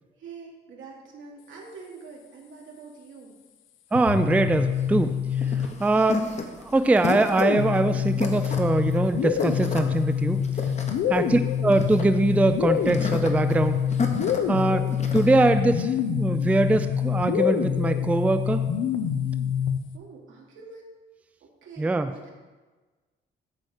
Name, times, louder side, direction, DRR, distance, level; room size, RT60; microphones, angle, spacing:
voice 1, 0.2-3.3 19.9-20.9 21.4-22.3, right 4 dB, 75° right, -1 dB, 1.7 m, -45 dB
sound 1, 3.9-6.1 7.0-20.0, left 8 dB, 85° left, 0.6 m, -26 dB
voice 2, 3.9-5.2 5.8-6.3 6.6-10.4 11.1-13.8 14.5-14.9 15.1-18.6 21.8-22.1, right 2 dB, 5° right, 9 dB, 0.3 m, -22 dB
sound 2, 4.7-15.3, left 4 dB, 35° left, 1.0 m, -33 dB
8.5 x 3.2 x 6.4 m, 1.3 s
cardioid pair, 90°, 20 cm